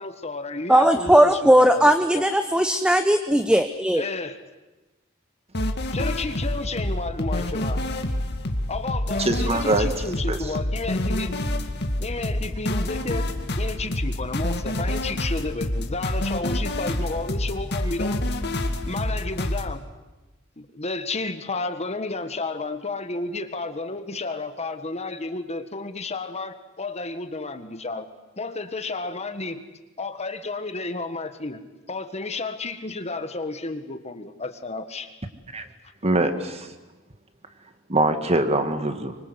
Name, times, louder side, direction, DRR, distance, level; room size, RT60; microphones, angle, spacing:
voice 1, 0.0-2.3 3.9-4.4 5.9-7.8 8.7-11.4 12.0-18.2 18.9-19.8 20.6-28.1 28.4-29.6 30.0-31.6 31.9-35.1, left 3 dB, 30° left, 9 dB, 1.6 m, -32 dB
voice 2, 0.7-4.0, right 1 dB, 5° right, 8 dB, 0.8 m, -18 dB
sound 1, 5.5-19.7, left 1 dB, 55° left, 2.1 m, -27 dB
voice 3, 9.2-10.6 35.5-35.7 36.0-36.7 37.9-39.2, right 2 dB, 30° right, 8 dB, 2.0 m, -24 dB
25.5 x 24.5 x 8.1 m, 1.1 s
head